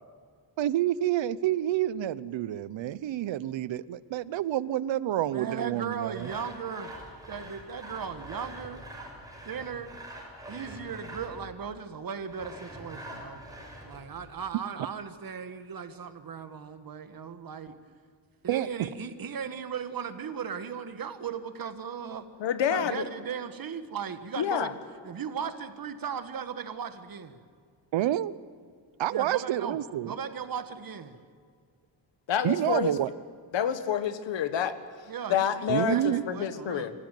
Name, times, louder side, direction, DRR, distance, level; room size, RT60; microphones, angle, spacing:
voice 1, 0.6-6.3 18.5-18.7 27.9-28.3 29.0-30.1 32.4-33.1 35.7-36.2, right 12 dB, 85° right, 17 dB, 0.9 m, -28 dB
voice 2, 5.3-6.9 7.3-8.8 9.4-10.0 10.5-13.4 13.8-17.8 18.4-22.3 22.7-24.8 25.0-27.4 29.1-29.8 30.0-31.2 35.1-36.9, right 7 dB, 50° right, 9 dB, 1.7 m, -37 dB
Sawing, 6.1-11.5 12.3-14.3, right 1 dB, 10° right, 6.5 m, -44 dB
voice 3, 22.4-23.1 24.4-24.7 32.3-32.9 33.5-36.9, left 8 dB, 75° left, 11 dB, 1.7 m, -28 dB
27.0 x 16.0 x 9.3 m, 2.1 s
wide cardioid pair, 130°, 44 cm